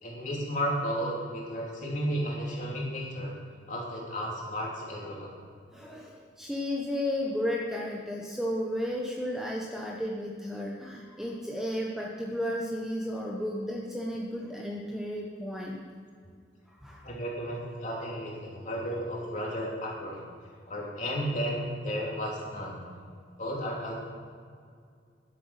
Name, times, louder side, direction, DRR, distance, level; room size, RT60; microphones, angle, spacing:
voice 1, 0.0-3.3 3.7-5.3 17.0-20.2 20.7-22.8 23.4-24.0, equal, 40° left, -4 dB, 3.0 m, -33 dB
voice 2, 5.7-15.8 16.8-17.1, left 1 dB, 5° right, -2 dB, 0.9 m, -33 dB
11.0 x 7.8 x 6.4 m, 2.2 s
head